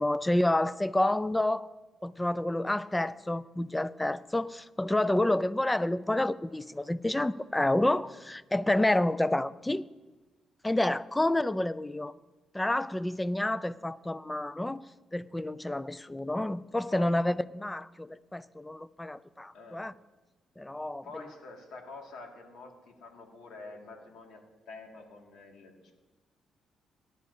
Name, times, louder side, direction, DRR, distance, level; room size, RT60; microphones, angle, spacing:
voice 1, 0.0-1.7 2.0-9.8 10.6-12.1 12.5-14.8 15.1-19.9 20.6-21.3, left 1 dB, 10° left, 17 dB, 0.4 m, -29 dB
voice 2, 16.9-17.3 19.5-19.8 21.0-24.4 24.7-25.9, left 3 dB, 75° left, 2 dB, 2.1 m, -47 dB
18.5 x 10.5 x 2.7 m, 1.2 s
cardioid pair, 90°, 0 cm